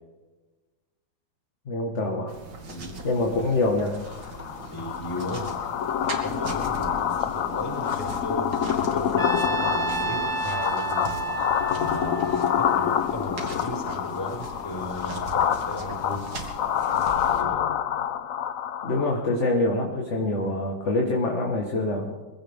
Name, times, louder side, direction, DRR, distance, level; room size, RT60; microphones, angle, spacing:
voice 1, 1.6-2.3 3.0-4.0 18.8-22.2, left 2 dB, 40° left, 0 dB, 1.7 m, -25 dB
sound 1, 2.3-17.4, right 2 dB, 65° right, 2.6 m, -40 dB
sound 2, 4.0-19.4, left 9 dB, 70° left, 0.8 m, -27 dB
voice 2, 4.7-5.5 6.2-11.2 11.7-16.3 16.8-17.6, left 1 dB, 10° left, -2 dB, 5.2 m, -36 dB
Trumpet, 9.2-13.4, right 3 dB, 15° right, 0.7 m, -31 dB
23.0 x 16.0 x 3.6 m, 1.3 s
omnidirectional pair, 2.1 m